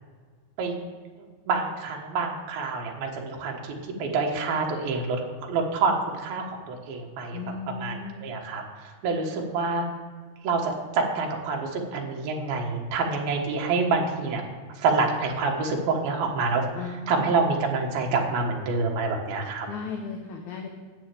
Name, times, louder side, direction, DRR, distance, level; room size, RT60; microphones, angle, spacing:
voice 1, 1.5-3.7 4.0-7.4 7.7-9.9 10.4-14.4 14.8-19.7, right 4 dB, 70° right, 0 dB, 3.4 m, -27 dB
voice 2, 7.3-8.2 9.2-9.4 16.8-17.3 19.7-20.7, left 5 dB, 65° left, 2 dB, 2.0 m, -36 dB
10.0 x 7.1 x 9.1 m, 1.5 s
omnidirectional pair, 4.5 m